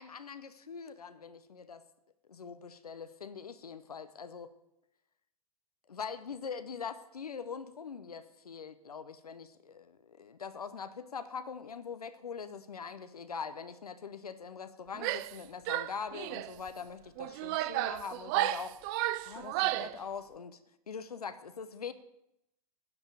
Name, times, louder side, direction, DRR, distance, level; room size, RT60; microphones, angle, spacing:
voice 1, 0.0-1.8 2.3-4.5 5.9-18.8 19.2-20.6 20.9-21.9, left 6 dB, 80° left, 11 dB, 0.7 m, -43 dB
Female speech woman speaking / Yell, 14.9-15.4 15.7-16.5 17.2-20.0, right 15 dB, 35° right, 0.3 m, -33 dB
9.5 x 5.4 x 8.2 m, 0.84 s
figure-of-eight pair, 100°, 19 cm